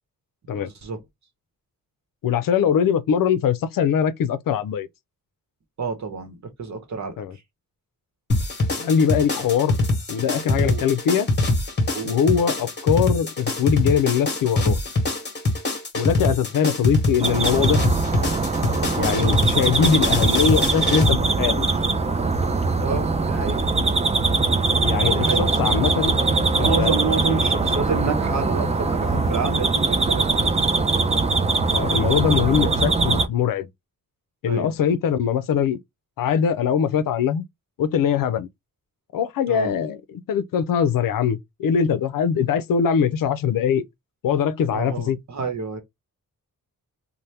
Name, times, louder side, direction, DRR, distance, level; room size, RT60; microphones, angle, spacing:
voice 1, 0.6-1.0 5.8-7.1 10.6-10.8 11.9-12.2 22.8-23.7 25.1-25.5 26.6-30.5 34.4-34.7 39.5-39.7 44.7-45.8, right 5 dB, 55° right, 0.9 m, -29 dB
voice 2, 2.2-4.9 7.2-7.3 8.8-9.8 10.1-11.3 12.0-14.8 15.9-17.8 19.0-21.7 24.8-26.2 26.6-26.9 27.3-27.5 31.7-33.7 34.4-35.8 36.2-37.4 37.8-38.5 39.1-43.8 44.2-45.2, left 7 dB, 75° left, 0.5 m, -22 dB
sound 1, 8.3-21.1, left 2 dB, 30° left, 1.1 m, -23 dB
sound 2, 17.2-33.3, right 3 dB, 20° right, 0.4 m, -22 dB
2.7 x 2.1 x 3.3 m
cardioid pair, 85°, 34 cm